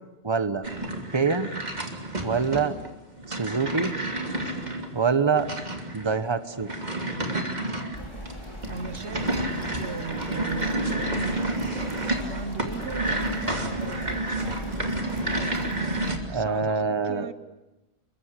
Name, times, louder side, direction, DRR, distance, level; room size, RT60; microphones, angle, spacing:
voice 1, 0.2-0.6 1.1-1.5 2.2-2.7 3.3-3.9 4.9-5.5 5.9-6.7 16.3-17.3, right 5 dB, 25° right, 11 dB, 1.2 m, -25 dB
sound 1, 0.6-16.2, right 1 dB, 40° right, 3.0 m, -30 dB
sound 2, 7.9-16.2, equal, 25° left, 4.8 m, -40 dB
voice 2, 8.7-9.5 9.8-11.6 12.3-14.5 16.3-17.3, right 4 dB, 85° right, 12 dB, 1.5 m, -37 dB
28.5 x 24.0 x 8.3 m, 0.99 s
omnidirectional pair, 1.1 m